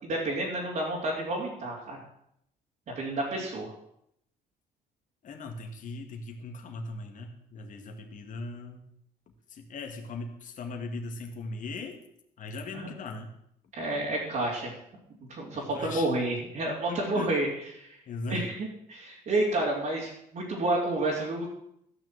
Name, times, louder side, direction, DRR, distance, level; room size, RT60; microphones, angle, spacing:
voice 1, 0.0-2.0 2.9-3.7 12.7-12.9 13.8-14.7 15.3-18.0 18.3-21.5, right 2 dB, 50° right, -6 dB, 3.7 m, -30 dB
voice 2, 5.2-8.8 9.5-12.0 12.4-13.3 15.5-16.1 16.9-17.3 18.1-18.5, left 3 dB, 50° left, 4 dB, 2.1 m, -39 dB
14.0 x 6.2 x 7.8 m, 0.73 s
cardioid pair, 110°, 17 cm